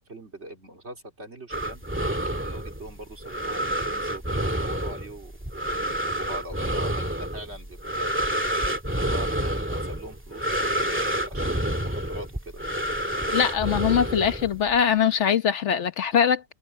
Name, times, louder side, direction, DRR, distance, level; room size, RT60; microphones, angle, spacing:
voice 1, 0.0-1.8 2.4-8.1 9.0-12.6 13.2-13.4, right 1 dB, 70° right, 3.7 m, -42 dB
sound 1, 1.5-14.8, right 1 dB, 10° right, 2.1 m, -29 dB
voice 2, 13.3-16.4, left 8 dB, 80° left, 1.3 m, -22 dB
omnidirectional pair, 1.2 m